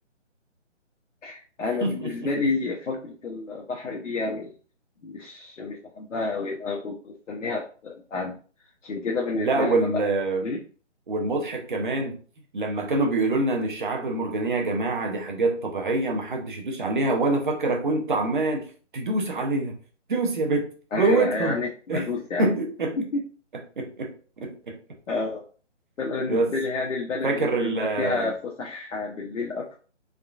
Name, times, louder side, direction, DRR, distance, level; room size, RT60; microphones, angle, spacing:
voice 1, 1.2-4.5 5.0-8.3 8.8-10.0 10.4-10.6 20.9-22.5 23.1-23.2 25.1-25.4 26.0-29.8, left 3 dB, 90° left, -2 dB, 0.8 m, -30 dB
voice 2, 1.8-2.3 9.4-10.4 11.1-12.2 12.5-18.7 18.9-19.8 20.1-20.7 21.0-21.6 21.9-22.1 22.4-23.0 23.8-24.1 24.4-24.8 26.3-26.5 27.2-28.3, right 2 dB, 45° right, 2 dB, 0.6 m, -25 dB
3.6 x 2.3 x 2.3 m, 0.40 s
hypercardioid pair, 165°, 37 cm